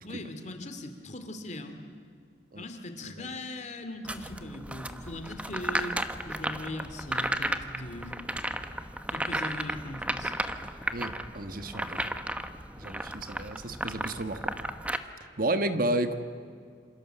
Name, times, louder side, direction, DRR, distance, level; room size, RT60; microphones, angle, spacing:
voice 1, 0.0-1.7 2.5-6.0 6.2-8.3 9.1-10.3, left 1 dB, 40° left, 7 dB, 2.5 m, -40 dB
sound 1, 4.0-15.0, right 1 dB, 5° right, 1.1 m, -34 dB
voice 2, 10.9-12.2 12.8-14.5 15.4-16.1, right 1 dB, 50° right, 8 dB, 1.4 m, -32 dB
27.5 x 27.0 x 8.0 m, 2.3 s
head